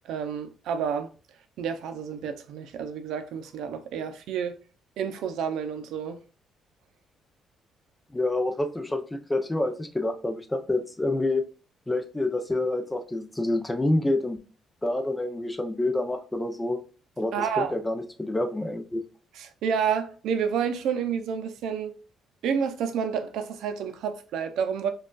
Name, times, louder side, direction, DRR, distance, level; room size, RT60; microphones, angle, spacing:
voice 1, 0.1-1.1 1.6-4.6 5.0-6.2 17.3-17.7 19.3-21.9 22.4-24.9, right 7 dB, 80° right, 0.5 m, -29 dB
voice 2, 8.1-11.4 11.9-14.4 14.8-16.8 17.2-19.0, left 2 dB, 10° left, 0.5 m, -27 dB
5.0 x 2.3 x 2.3 m
cardioid pair, 125°, 0 cm